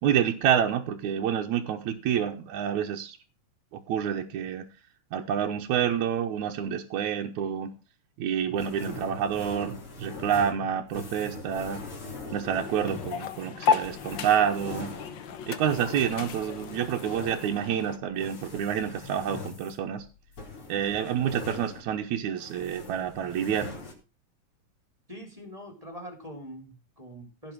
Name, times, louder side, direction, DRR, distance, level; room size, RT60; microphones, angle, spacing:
voice 1, 0.0-3.2 3.7-4.6 5.1-7.7 8.2-11.8 12.3-14.9 15.5-20.1 20.7-23.7, right 9 dB, 70° right, 2 dB, 2.3 m, -28 dB
sound 1, 8.6-22.1 22.4-23.9, left 3 dB, 45° left, 4.1 m, -42 dB
sound 2, 12.6-18.0, left 6 dB, 65° left, 1.1 m, -33 dB
voice 2, 25.1-27.5, equal, 10° right, 4 dB, 3.1 m, -43 dB
16.5 x 6.1 x 6.1 m, 0.32 s
omnidirectional pair, 3.6 m